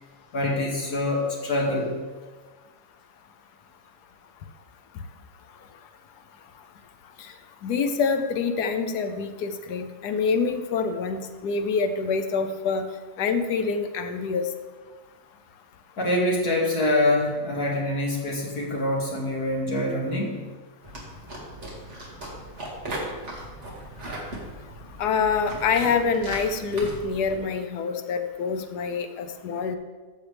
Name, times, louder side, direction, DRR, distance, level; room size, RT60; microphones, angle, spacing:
voice 1, 0.3-2.0 16.0-20.4, left 1 dB, 70° left, -4 dB, 2.7 m, -25 dB
voice 2, 7.6-12.9 13.2-14.5 25.0-29.8, left 5 dB, 85° left, 7 dB, 1.3 m, -26 dB
sound 1, 20.8-27.4, right 1 dB, 45° right, 2.3 m, -38 dB
14.5 x 7.3 x 3.4 m, 1.3 s
omnidirectional pair, 1.7 m